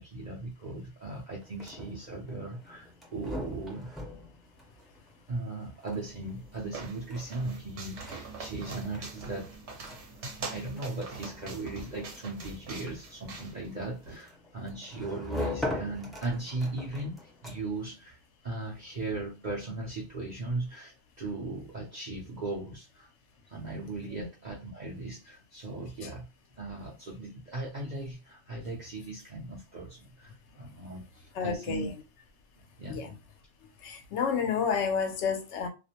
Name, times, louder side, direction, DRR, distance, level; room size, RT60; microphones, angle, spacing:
voice 1, 0.0-3.9 5.3-9.6 10.5-18.2 18.4-23.1 23.5-26.2 26.6-31.9 32.8-33.0, right 2 dB, 45° right, 0.6 m, -38 dB
sound 1, 1.4-17.9, left 2 dB, ahead, 0.5 m, -42 dB
sound 2, 6.0-14.2, right 3 dB, 70° right, 1.0 m, -44 dB
voice 2, 31.3-31.9 32.9-33.2 33.8-35.7, left 6 dB, 75° left, 0.9 m, -30 dB
2.4 x 2.0 x 2.8 m
omnidirectional pair, 1.2 m